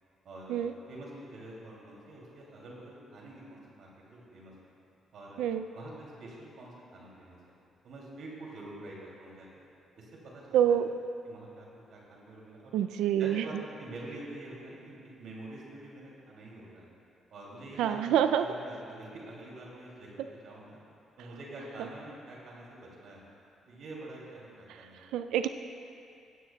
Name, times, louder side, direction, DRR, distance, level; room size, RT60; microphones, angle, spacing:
voice 1, 0.2-4.7 5.1-5.4 5.7-7.5 7.8-9.5 10.0-10.9 11.2-12.8 13.2-16.9 17.3-20.8 21.2-23.3 23.7-25.2, right 1 dB, 70° right, -4 dB, 2.7 m, -46 dB
voice 2, 10.5-10.9 12.7-13.4 17.8-18.5 25.1-25.5, right 10 dB, 90° right, 9 dB, 0.3 m, -26 dB
16.0 x 13.0 x 2.3 m, 2.6 s
cardioid pair, 90°, 0 cm